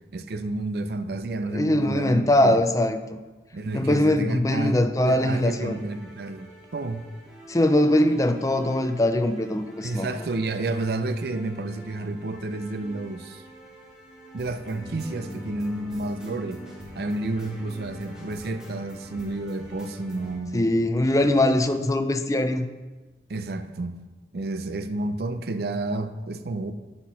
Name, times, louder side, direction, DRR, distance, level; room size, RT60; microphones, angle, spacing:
voice 1, 0.1-2.6 3.5-7.1 9.8-13.4 14.3-16.6 16.9-20.7 23.3-24.0 24.3-26.7, right 2 dB, 60° right, 9 dB, 0.5 m, -30 dB
voice 2, 1.5-3.2 3.7-5.8 7.5-10.1 20.5-22.7, left 1 dB, 20° left, 8 dB, 0.5 m, -22 dB
sound 1, 5.0-20.4, equal, 5° right, 1.5 m, -44 dB
10.0 x 4.5 x 5.6 m, 1.2 s
head